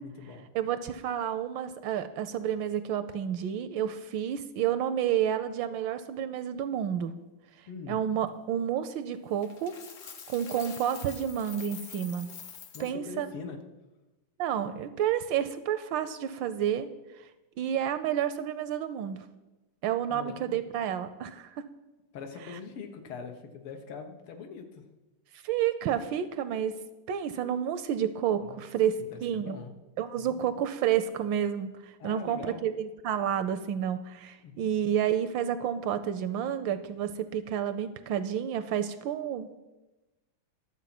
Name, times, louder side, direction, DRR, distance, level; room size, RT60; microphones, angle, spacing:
voice 1, 0.0-0.5 7.7-8.0 12.7-13.6 20.1-20.5 22.1-24.8 28.4-28.6 29.0-29.7 30.2-30.5 32.0-32.7 34.4-34.7, left 6 dB, 85° left, 5 dB, 2.0 m, -42 dB
voice 2, 0.5-7.1 7.9-9.8 10.3-12.3 12.8-13.3 14.4-16.9 17.2-17.3 17.6-19.2 19.8-21.6 25.3-26.7 27.1-29.6 30.0-39.6, right 9 dB, 75° right, 11 dB, 1.2 m, -30 dB
Coin (dropping), 9.4-12.9, left 7 dB, 60° left, 0.8 m, -46 dB
12.0 x 7.3 x 5.9 m, 1.1 s
omnidirectional pair, 2.4 m